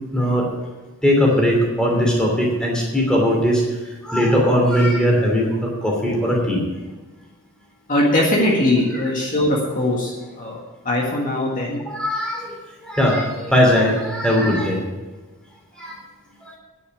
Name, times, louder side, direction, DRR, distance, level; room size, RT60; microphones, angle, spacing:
voice 1, 0.1-0.5 1.0-3.6 4.0-6.6 11.9-12.5 12.8-14.8 15.8-16.0 16.4-16.6, equal, 5° left, -2 dB, 2.8 m, -19 dB
voice 2, 7.9-10.6 10.9-11.8, left 1 dB, 35° left, -2 dB, 1.7 m, -20 dB
10.0 x 7.1 x 8.4 m, 1.2 s
head